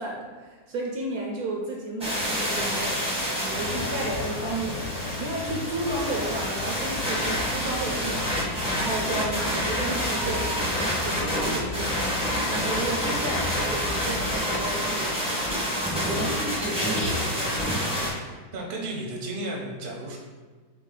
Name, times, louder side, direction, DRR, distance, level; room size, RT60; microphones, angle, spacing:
voice 1, 0.0-3.0 3.3-12.2 12.5-16.0 16.8-17.5, right 2 dB, 70° right, -1 dB, 1.0 m, -33 dB
sound 1, 2.0-18.1, equal, 5° right, 0.7 m, -28 dB
sound 2, 3.5-14.4, left 3 dB, 70° left, 0.9 m, -36 dB
voice 2, 3.7-4.0 17.0-17.6 17.9-20.2, right 1 dB, 40° right, -2 dB, 0.8 m, -35 dB
3.7 x 3.6 x 3.8 m, 1.5 s
omnidirectional pair, 1.8 m